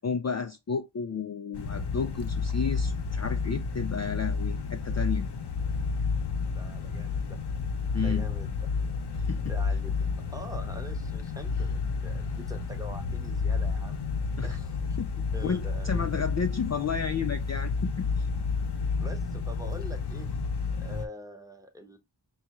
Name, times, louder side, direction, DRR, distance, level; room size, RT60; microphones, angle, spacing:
voice 1, 0.0-5.3 7.9-8.3 9.1-9.4 14.4-14.6 15.4-18.3, left 6 dB, 40° left, 0.4 m, -32 dB
sound 1, 1.5-21.1, left 4 dB, 60° left, 0.7 m, -30 dB
voice 2, 6.5-7.5 8.0-8.6 9.5-9.9 10.2-14.0 14.4-14.8 15.3-16.0 19.0-20.3 20.7-22.0, left 1 dB, 10° right, 0.9 m, -44 dB
5.3 x 2.3 x 2.9 m
wide cardioid pair, 40°, 45 cm